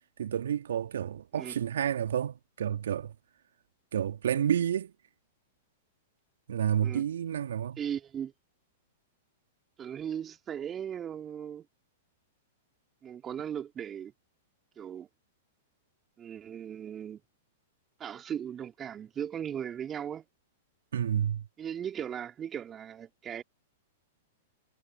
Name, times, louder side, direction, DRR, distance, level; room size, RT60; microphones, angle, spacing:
voice 1, 0.2-3.1 3.9-4.9 6.5-7.8 20.9-21.5, right 9 dB, 70° right, 3.0 m, -30 dB
voice 2, 7.8-8.3 9.8-11.7 13.0-14.1 14.8-15.1 16.2-17.2 18.0-20.3 21.6-23.4, right 9 dB, 25° right, 3.3 m, -37 dB
figure-of-eight pair, 105°, 0 cm